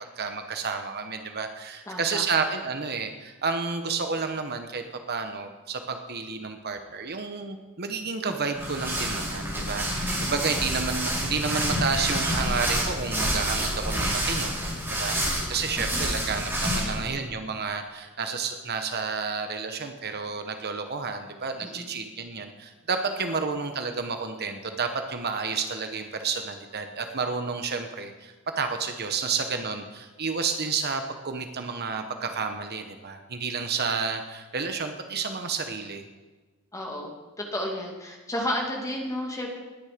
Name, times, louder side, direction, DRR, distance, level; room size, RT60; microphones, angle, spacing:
voice 1, 0.2-14.5 14.9-36.0, right 5 dB, 45° right, 6 dB, 1.1 m, -30 dB
voice 2, 1.9-2.2 9.9-10.5 16.7-16.8 21.6-21.9 23.2-23.4 36.7-37.1 37.4-39.6, left 1 dB, 15° left, 0 dB, 2.4 m, -32 dB
sound 1, 8.5-17.1, equal, 10° right, 4.8 m, -28 dB
20.0 x 9.8 x 5.2 m, 1.2 s
head